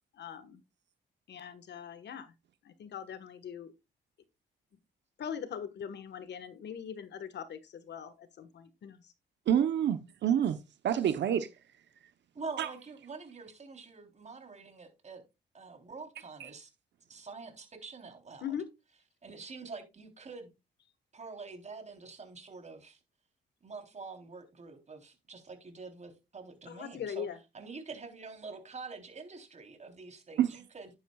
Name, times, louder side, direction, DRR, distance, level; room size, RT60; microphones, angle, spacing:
voice 1, 0.2-0.6 1.3-2.3 2.6-3.7 5.2-9.0 18.4-18.7 26.7-27.4, left 8 dB, 60° left, 1.5 m, -41 dB
voice 2, 9.5-10.6 10.8-11.5 12.6-12.7 16.4-16.5 30.4-30.5, right 9 dB, 65° right, 0.9 m, -27 dB
voice 3, 12.3-15.2 15.5-16.7 17.1-18.6 19.2-20.5 21.1-23.0 23.6-27.3 27.5-30.9, right 4 dB, 35° right, 3.5 m, -46 dB
10.5 x 9.7 x 2.4 m
cardioid pair, 90°, 20 cm